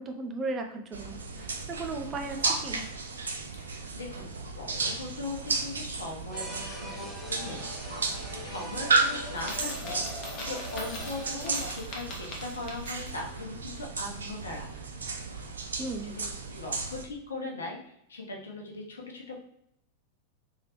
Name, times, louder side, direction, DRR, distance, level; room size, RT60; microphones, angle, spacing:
voice 1, 0.0-2.9 15.8-16.2, right 3 dB, 25° right, 4 dB, 0.5 m, -36 dB
sound 1, 0.9-17.0, right 4 dB, 70° right, 0.5 m, -34 dB
voice 2, 3.5-4.3 4.6-7.6 8.4-14.9 16.0-16.3 16.5-17.8 18.1-19.4, left 2 dB, 70° left, 0 dB, 0.9 m, -39 dB
sound 2, 6.3-11.7, left 1 dB, 10° left, 1.1 m, -42 dB
Coin (dropping), 9.4-13.3, left 2 dB, 35° left, 1.0 m, -42 dB
3.7 x 3.3 x 2.9 m, 0.76 s
figure-of-eight pair, 90°, 0 cm